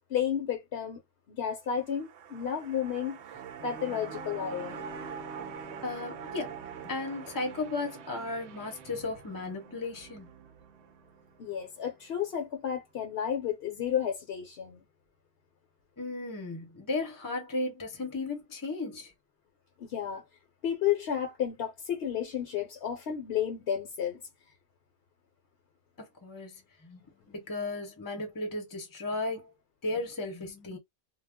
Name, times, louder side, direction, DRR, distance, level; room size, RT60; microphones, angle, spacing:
voice 1, 0.1-1.0 1.3-3.2 3.6-4.8 11.4-14.8 19.8-20.2 20.6-24.2, left 9 dB, 65° left, 0.9 m, -32 dB
sound 1, 1.7-12.1 12.4-12.5, right 8 dB, 75° right, 0.8 m, -45 dB
sound 2, 3.0-12.1, equal, 25° right, 1.0 m, -50 dB
voice 2, 5.8-6.6 6.8-10.3 16.0-19.1 26.0-27.0 27.3-29.5 29.8-30.8, left 2 dB, 20° left, 0.6 m, -35 dB
2.3 x 2.0 x 3.5 m
omnidirectional pair, 1.2 m